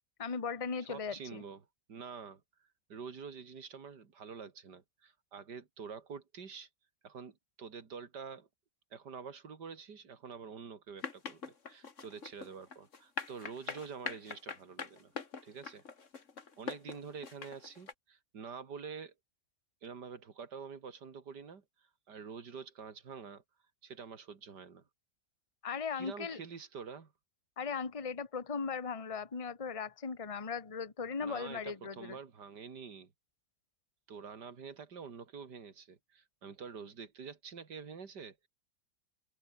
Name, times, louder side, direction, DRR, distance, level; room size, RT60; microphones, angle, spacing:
voice 1, 0.2-1.4 25.6-26.4 27.6-32.2, left 5 dB, 20° left, 1.3 m, -38 dB
voice 2, 0.9-1.6 1.9-2.4 2.9-6.7 7.0-8.5 8.9-15.1 15.4-15.8 16.6-19.1 19.8-23.4 23.8-24.8 25.9-27.1 31.2-33.1 34.1-38.5, right 6 dB, 65° right, 3.0 m, -47 dB
sound 1, 11.0-17.9, left 5 dB, 40° left, 2.3 m, -42 dB
omnidirectional pair, 2.0 m